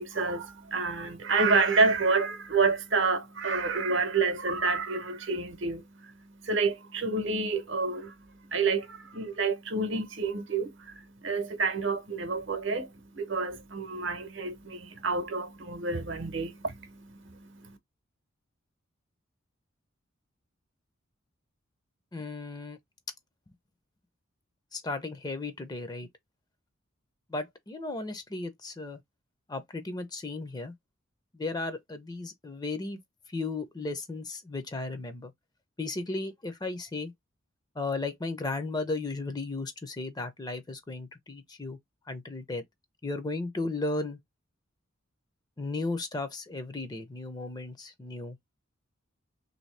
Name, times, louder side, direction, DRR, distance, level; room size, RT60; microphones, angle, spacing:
voice 1, 0.0-6.1 6.4-8.1 8.5-17.8, right 4 dB, 65° right, 0.8 m, -29 dB
voice 2, 22.1-22.8 24.7-26.1 27.3-29.0 29.5-30.7 31.3-33.0 33.3-35.3 35.8-37.1 37.8-41.8 42.1-42.6 43.0-44.2 45.6-48.4, left 3 dB, 20° left, 0.5 m, -35 dB
3.1 x 2.7 x 3.2 m
head